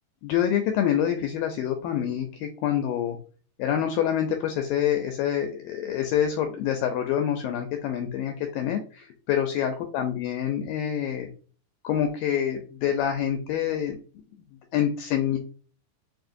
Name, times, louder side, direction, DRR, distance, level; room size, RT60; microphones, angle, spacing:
voice 1, 0.2-3.2 3.6-11.3 11.8-14.0 14.7-15.4, left 9 dB, 85° left, 5 dB, 2.0 m, -26 dB
6.9 x 2.4 x 2.6 m, 0.40 s
omnidirectional pair, 4.4 m